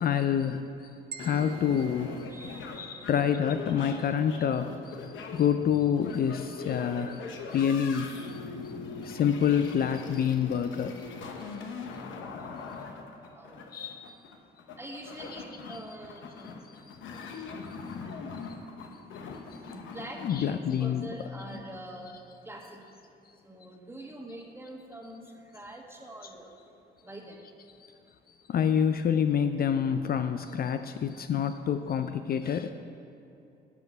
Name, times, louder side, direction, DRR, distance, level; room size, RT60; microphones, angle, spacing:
voice 1, 0.0-0.6 1.2-2.2 2.7-7.2 7.5-8.1 9.0-10.9 13.7-14.0 15.2-15.4 15.7-15.8 20.2-21.1 21.5-21.6 26.2-26.3 28.5-32.7, left 8 dB, 50° left, 9 dB, 0.4 m, -27 dB
sound 1, 1.1-3.3, right 7 dB, 55° right, 0.7 m, -47 dB
sound 2, 1.2-20.3, left 4 dB, 75° left, 0.9 m, -41 dB
voice 2, 2.3-3.1 9.0-9.1 12.1-12.3 12.5-12.7 13.3-13.7 14.7-16.7 18.0-18.2 19.7-22.8 23.4-27.4, right 1 dB, 10° right, 1 dB, 1.4 m, -45 dB
12.0 x 6.0 x 5.3 m, 2.7 s
cardioid pair, 90°, 20 cm